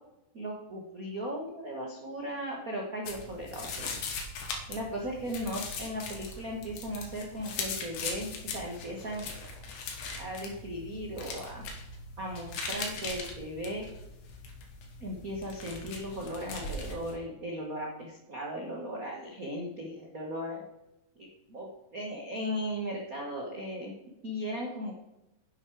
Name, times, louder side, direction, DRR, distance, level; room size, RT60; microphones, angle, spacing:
voice 1, 0.3-4.0 4.7-9.3 10.1-11.6 12.2-13.8 15.0-20.6 21.1-23.9 24.2-25.0, equal, 90° right, -1 dB, 0.7 m, -37 dB
sound 1, 3.1-17.2, left 4 dB, 65° left, 2.9 m, -40 dB
10.5 x 6.8 x 4.8 m, 0.92 s
omnidirectional pair, 4.1 m